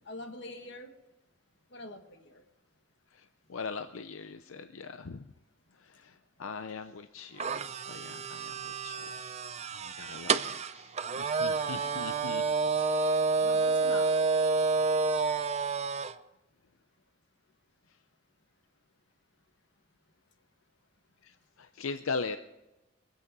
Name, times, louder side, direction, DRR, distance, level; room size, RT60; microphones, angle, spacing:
voice 1, 0.1-0.9 1.7-2.4 13.4-14.3, left 1 dB, 60° left, 5 dB, 1.7 m, -44 dB
voice 2, 3.1-5.3 5.8-9.1 9.7-13.4 16.0-16.1 21.2-22.4, left 4 dB, 90° left, 9 dB, 0.6 m, -41 dB
sound 1, 7.4-16.1, right 4 dB, 30° right, 0.5 m, -29 dB
24.0 x 8.4 x 5.4 m, 1.0 s
head